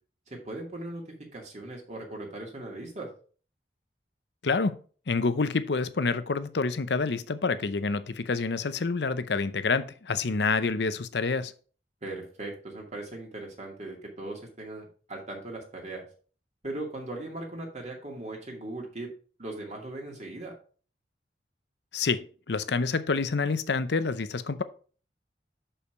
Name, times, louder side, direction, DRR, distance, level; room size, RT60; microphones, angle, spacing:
voice 1, 0.3-3.1 12.0-16.0 16.6-19.1 19.4-20.5, right 2 dB, 40° right, 2.3 m, -39 dB
voice 2, 4.4-4.8 5.1-11.5 21.9-24.6, left 4 dB, 70° left, 0.6 m, -28 dB
6.5 x 5.6 x 5.1 m
head